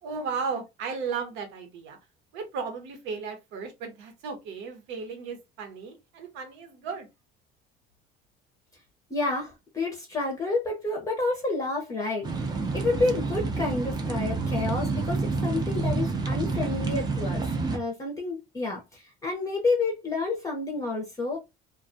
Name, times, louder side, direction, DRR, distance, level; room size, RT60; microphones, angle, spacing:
voice 1, 0.0-2.0 2.3-7.1, right 5 dB, 70° right, 1.0 m, -35 dB
voice 2, 9.1-17.5 17.7-21.4, left 3 dB, 15° left, 0.7 m, -29 dB
sound 1, 12.2-17.8, right 3 dB, 20° right, 0.6 m, -28 dB
2.3 x 2.2 x 2.6 m
cardioid pair, 125°, 19 cm